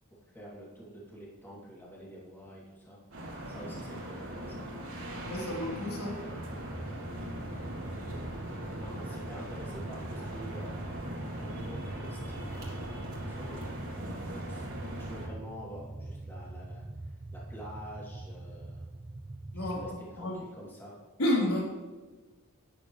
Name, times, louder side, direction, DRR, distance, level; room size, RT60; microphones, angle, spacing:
voice 1, 0.1-3.0 3.5-4.6 8.7-12.7 13.3-13.8 14.3-16.9 17.3-18.9 19.5-21.0, equal, 10° left, -5 dB, 2.9 m, -48 dB
sound 1, 3.1-15.3, equal, 65° right, 3.3 m, -40 dB
voice 2, 5.2-6.2 19.5-20.4 21.2-21.6, left 1 dB, 80° left, -4 dB, 3.6 m, -31 dB
sound 2, 6.3-20.0, right 2 dB, 15° right, 0.3 m, -43 dB
12.5 x 11.0 x 3.3 m, 1.3 s
head